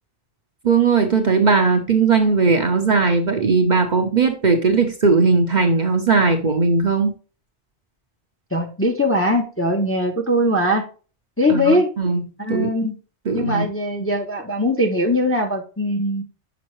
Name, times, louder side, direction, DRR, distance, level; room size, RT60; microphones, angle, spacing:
voice 1, 0.6-7.1 11.5-12.2 12.5-12.7 13.3-13.7, right 4 dB, 45° right, 5 dB, 0.7 m, -18 dB
voice 2, 8.5-10.8 11.4-11.9 12.4-12.9 13.3-16.2, left 1 dB, 15° left, 1 dB, 0.6 m, -20 dB
6.1 x 5.3 x 3.0 m, 0.36 s
omnidirectional pair, 1.2 m